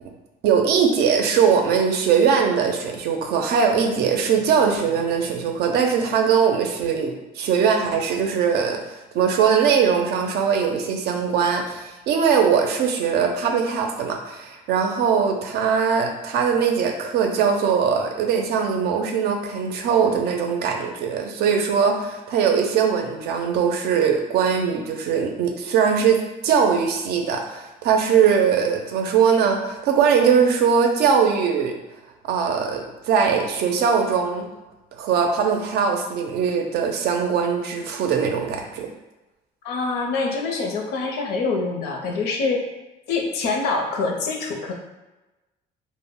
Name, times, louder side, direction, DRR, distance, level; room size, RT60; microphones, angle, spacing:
voice 1, 0.4-31.7 32.3-34.5 34.9-38.9, right 6 dB, 70° right, 3 dB, 0.5 m, -21 dB
voice 2, 39.6-42.7 43.1-44.7, left 3 dB, 80° left, 1 dB, 0.6 m, -25 dB
2.1 x 2.0 x 3.6 m, 1.1 s
cardioid pair, 110°, 17 cm